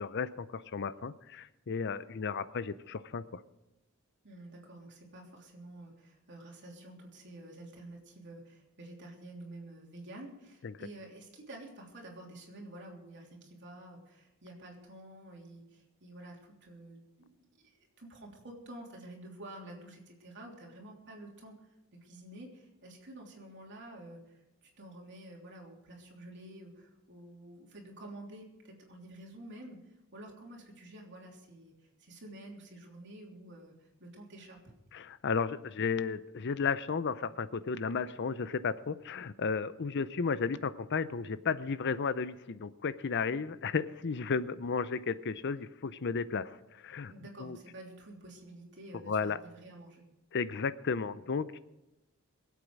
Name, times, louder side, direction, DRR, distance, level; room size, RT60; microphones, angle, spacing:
voice 1, 0.0-3.4 10.6-10.7 34.9-47.1 47.4-47.6 49.1-49.4 50.3-51.6, left 5 dB, 55° left, 15 dB, 0.6 m, -34 dB
voice 2, 4.2-21.6 22.0-34.8 47.1-50.0, right 1 dB, 55° right, -1 dB, 3.2 m, -50 dB
23.0 x 8.3 x 4.8 m, 0.95 s
head